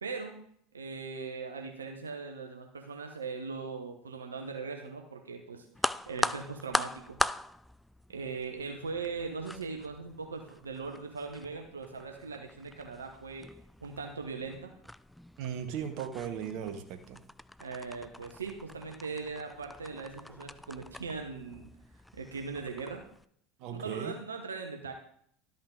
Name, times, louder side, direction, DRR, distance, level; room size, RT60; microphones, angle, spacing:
voice 1, 0.0-0.4 0.7-5.7 6.1-7.2 8.1-13.5 13.8-14.7 17.6-21.7 22.1-23.0 23.7-24.9, right 4 dB, 90° right, 3 dB, 1.0 m, -40 dB
sound 1, 5.7-23.2, left 1 dB, 5° left, 0.3 m, -40 dB
voice 2, 15.4-17.2 23.6-24.1, right 8 dB, 55° right, 7 dB, 1.2 m, -37 dB
12.5 x 5.6 x 3.9 m, 0.65 s
hypercardioid pair, 80°, 0 cm